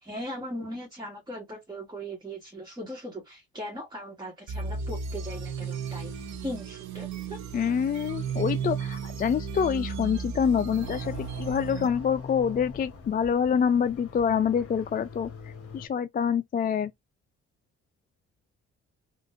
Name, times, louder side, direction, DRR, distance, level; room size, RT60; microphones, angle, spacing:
voice 1, 0.0-7.4, equal, 15° right, 1.4 m, -39 dB
sound 1, 4.5-11.9, right 6 dB, 65° right, 0.8 m, -34 dB
sound 2, 4.6-15.7, right 8 dB, 85° right, 1.2 m, -54 dB
voice 2, 7.5-15.3 15.7-16.9, left 7 dB, 30° left, 0.4 m, -26 dB
sound 3, 10.8-15.9, left 5 dB, 50° left, 1.2 m, -43 dB
3.7 x 2.5 x 2.6 m
cardioid pair, 90°, 30 cm